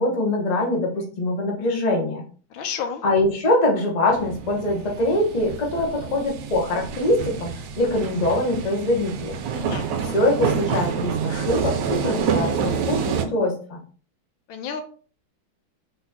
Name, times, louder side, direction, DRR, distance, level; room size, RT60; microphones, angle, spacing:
voice 1, 0.0-2.2 3.0-7.5 7.8-9.4 10.1-13.8, left 1 dB, 35° left, 0 dB, 0.7 m, -23 dB
voice 2, 2.5-3.0 9.5-9.8 14.5-14.8, left 7 dB, 75° left, 7 dB, 1.5 m, -31 dB
sound 1, 4.1-13.3, right 6 dB, 70° right, 1.1 m, -28 dB
4.0 x 3.8 x 2.8 m, 0.41 s
omnidirectional pair, 2.2 m